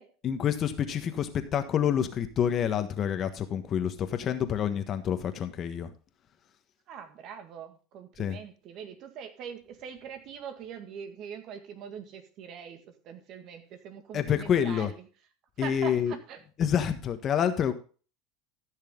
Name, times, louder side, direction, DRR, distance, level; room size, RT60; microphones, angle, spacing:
voice 1, 0.2-5.9 8.2-8.4 14.1-14.9 15.6-16.1 16.6-17.7, left 8 dB, 40° left, 9 dB, 1.4 m, -28 dB
voice 2, 6.9-15.0 15.6-16.4, right 7 dB, 50° right, 7 dB, 1.8 m, -43 dB
14.0 x 6.6 x 3.8 m, 0.38 s
supercardioid pair, 105°, 0 cm